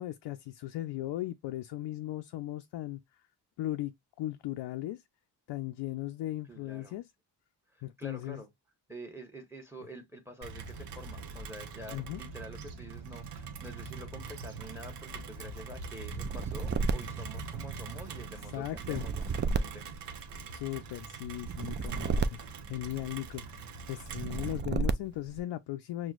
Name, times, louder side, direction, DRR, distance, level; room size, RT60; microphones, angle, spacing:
voice 1, 0.0-3.0 3.6-5.0 5.5-7.1 7.8-8.4 11.9-12.2 18.5-19.0 20.5-22.4 22.7-26.1, left 15 dB, 80° left, 0.5 m, -37 dB
voice 2, 6.5-7.0 7.7-8.5 8.9-19.8, right 1 dB, 5° right, 1.0 m, -47 dB
Rain, 10.4-24.6, right 4 dB, 70° right, 0.9 m, -43 dB
sound 1, 16.1-18.0 18.7-20.7 21.4-23.3 24.0-25.4, right 4 dB, 30° right, 0.3 m, -33 dB
6.1 x 2.2 x 2.4 m
cardioid pair, 90°, 42 cm